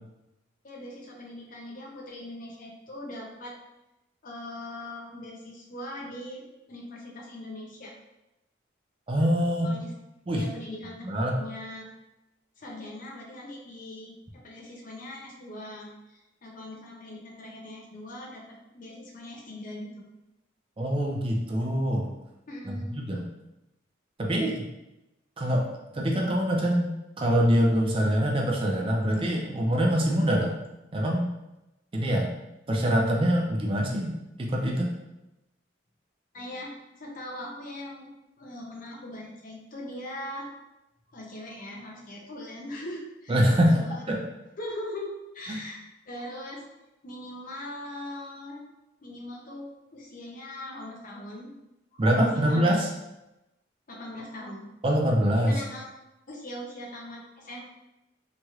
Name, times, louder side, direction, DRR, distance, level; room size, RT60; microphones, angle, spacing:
voice 1, 0.6-3.5 4.2-6.4 6.7-7.9 9.6-9.9 10.3-11.0 11.4-11.8 12.6-18.4 18.7-20.0 22.5-23.0 36.3-38.1 38.4-40.5 41.1-44.0 44.6-45.8 46.0-46.6 47.0-48.6 49.0-49.7 49.9-51.5 51.9-52.1 52.3-52.7 53.9-54.7 55.4-55.9 56.3-57.6, left 1 dB, 45° left, -2 dB, 0.6 m, -40 dB
voice 2, 9.1-9.7 10.3-10.4 11.0-11.4 20.8-22.1 22.6-23.2 24.2-24.7 25.4-25.7 25.9-26.9 27.2-30.6 30.9-31.3 31.9-32.3 32.7-34.1 34.4-34.9 43.3-43.8 44.1-44.2 52.0-52.9 54.8-55.6, equal, 30° right, -1 dB, 0.4 m, -24 dB
3.0 x 3.0 x 2.4 m, 0.95 s
head